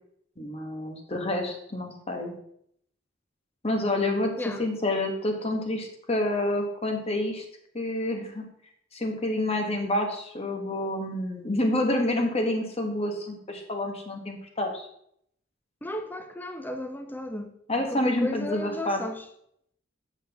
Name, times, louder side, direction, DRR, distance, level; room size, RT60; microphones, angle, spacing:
voice 1, 0.4-2.4 3.6-7.4 7.7-8.5 8.9-14.9 17.7-19.0, left 1 dB, 30° left, 1.2 m, -28 dB
voice 2, 15.8-17.5 17.9-19.3, left 1 dB, 10° left, 0.6 m, -34 dB
7.5 x 7.3 x 3.5 m
head